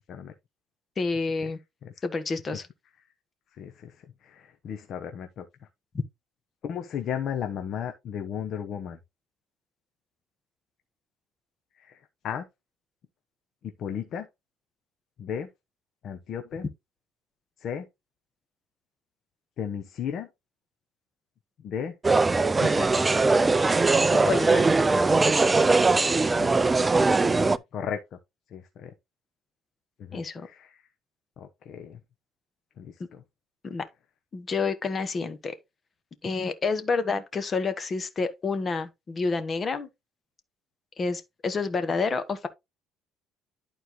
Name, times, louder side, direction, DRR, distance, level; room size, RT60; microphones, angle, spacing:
voice 1, 1.0-1.6 2.0-2.7 24.1-24.7 30.1-30.5 33.6-33.8 34.3-35.5 36.2-39.9 41.0-42.5, left 4 dB, 30° left, 1.3 m, -29 dB
voice 2, 3.5-5.7 6.6-9.0 11.7-12.5 13.6-14.3 15.2-15.5 16.0-16.7 17.6-17.9 19.6-20.3 21.6-22.0 22.5-22.9 26.0-26.6 27.2-28.2 28.5-28.9 30.0-30.9 31.4-32.0 32.8-33.2, left 8 dB, 50° left, 1.0 m, -35 dB
sound 1, 22.0-27.6, right 3 dB, 15° right, 0.4 m, -21 dB
11.5 x 4.4 x 3.1 m
cardioid pair, 130°, 0 cm